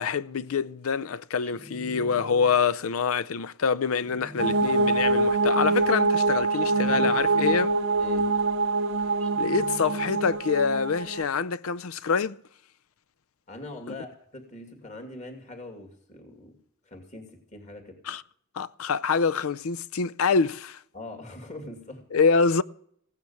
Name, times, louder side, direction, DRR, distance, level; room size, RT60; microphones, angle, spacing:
voice 1, 0.0-7.7 9.4-12.4 13.9-14.0 18.1-18.2 18.5-20.8 22.1-22.6, left 5 dB, 70° left, 0.5 m, -26 dB
sound 1, 1.4-2.8 3.9-5.2 6.5-7.9 9.2-10.6, equal, 5° left, 1.3 m, -45 dB
sound 2, 4.4-11.2, right 3 dB, 60° right, 0.6 m, -24 dB
voice 2, 8.0-8.3 13.5-16.6 16.8-18.0 20.9-22.1, left 2 dB, 35° left, 2.6 m, -42 dB
16.0 x 9.4 x 7.1 m
head